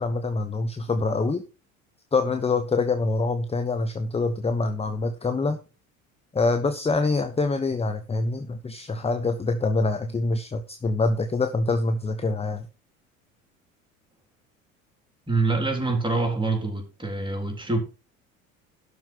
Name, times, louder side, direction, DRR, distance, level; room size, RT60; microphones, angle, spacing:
voice 1, 0.0-1.4 2.1-5.6 6.3-12.7, left 3 dB, 15° left, 7 dB, 1.1 m, -25 dB
voice 2, 15.3-17.8, right 3 dB, 10° right, 4 dB, 3.9 m, -25 dB
12.0 x 5.1 x 6.2 m, 0.32 s
figure-of-eight pair, 65°, 40 cm